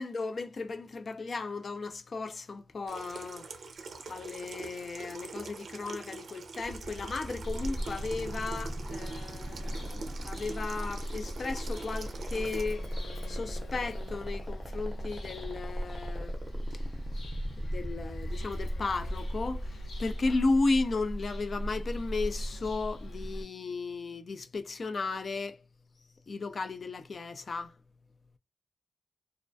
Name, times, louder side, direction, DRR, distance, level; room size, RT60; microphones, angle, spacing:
voice 1, 0.0-3.5 4.1-12.9 13.3-16.3 17.6-19.7 20.0-25.6 26.3-27.7, left 3 dB, 50° left, 0.3 m, -34 dB
Water tap faucet / Sink (filling or washing), 2.9-12.6, right 4 dB, 75° right, 0.4 m, -44 dB
sound 1, 6.6-20.6, right 1 dB, 15° right, 0.6 m, -43 dB
Bird vocalization bird call bird song, 7.4-23.4, equal, 80° left, 0.7 m, -38 dB
2.3 x 2.1 x 2.5 m
wide cardioid pair, 100°, 0 cm